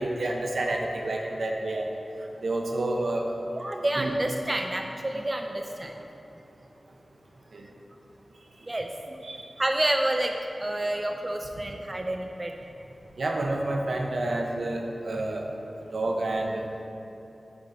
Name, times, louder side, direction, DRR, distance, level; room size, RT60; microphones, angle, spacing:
voice 1, 0.0-1.9 2.4-3.3 4.0-4.1 7.5-7.6 9.2-9.4 13.2-15.5 15.9-16.7, right 2 dB, 75° right, 1 dB, 0.7 m, -29 dB
voice 2, 3.6-5.9 8.7-9.2 9.6-12.5, right 1 dB, 30° right, 3 dB, 0.4 m, -29 dB
6.7 x 4.6 x 4.1 m, 2.9 s
wide cardioid pair, 60°, 0 cm